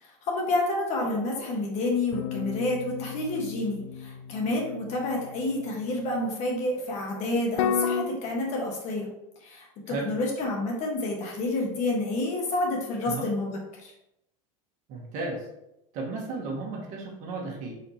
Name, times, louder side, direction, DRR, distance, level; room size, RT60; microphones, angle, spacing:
voice 1, 0.0-9.1 9.4-13.9, left 2 dB, 45° left, -1 dB, 1.3 m, -29 dB
sound 1, 2.1-6.2 7.6-8.0, left 7 dB, 70° left, 0.4 m, -33 dB
voice 2, 14.9-15.5 15.9-17.7, right 3 dB, 50° right, -1 dB, 1.4 m, -34 dB
4.3 x 2.9 x 4.2 m, 0.86 s
supercardioid pair, 135°, 16 cm